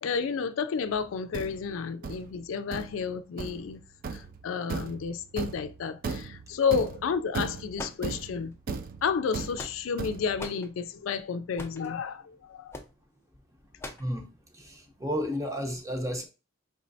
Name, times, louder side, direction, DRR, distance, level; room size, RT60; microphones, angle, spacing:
voice 1, 0.0-3.8 4.1-8.5 9.0-12.7, left 6 dB, 85° left, 0.4 m, -31 dB
Thump thud, 0.9-10.5, right 4 dB, 45° right, 0.3 m, -37 dB
sound 1, 7.7-8.5 9.3-10.0 10.4-10.7 11.6-11.9 12.7-12.9 13.8-14.1, left 2 dB, 15° left, 0.5 m, -41 dB
voice 2, 14.5-16.2, equal, 15° right, 0.8 m, -32 dB
4.8 x 3.1 x 2.7 m
head